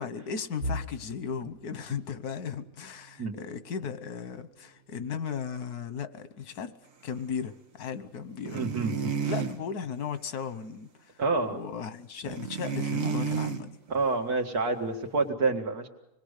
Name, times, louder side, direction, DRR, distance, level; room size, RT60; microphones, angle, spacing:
voice 1, 0.0-6.7 7.0-8.7 9.3-11.2 11.5-13.7, left 6 dB, 90° left, 1.6 m, -36 dB
sound 1, 0.6-12.4 12.9-13.1 13.5-13.7 14.5-15.0, equal, 40° right, 1.5 m, -46 dB
sound 2, 8.5-9.6 12.2-13.6, right 6 dB, 60° right, 1.8 m, -31 dB
voice 2, 8.5-9.3 11.2-11.6 13.9-15.9, right 3 dB, 90° right, 2.5 m, -28 dB
26.0 x 21.0 x 6.6 m
omnidirectional pair, 1.6 m